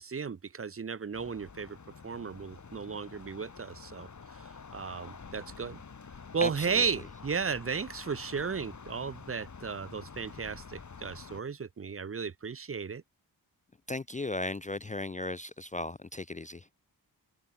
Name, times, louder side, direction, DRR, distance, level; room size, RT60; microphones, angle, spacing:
voice 1, 0.0-1.8 2.0-5.8 6.3-13.0, right 5 dB, 35° right, 0.6 m, -35 dB
sound 1, 1.1-11.4, left 5 dB, 45° left, 1.9 m, -48 dB
voice 2, 6.4-6.8 13.9-16.6, left 2 dB, 20° left, 0.4 m, -36 dB
open air
wide cardioid pair, 110°, 39 cm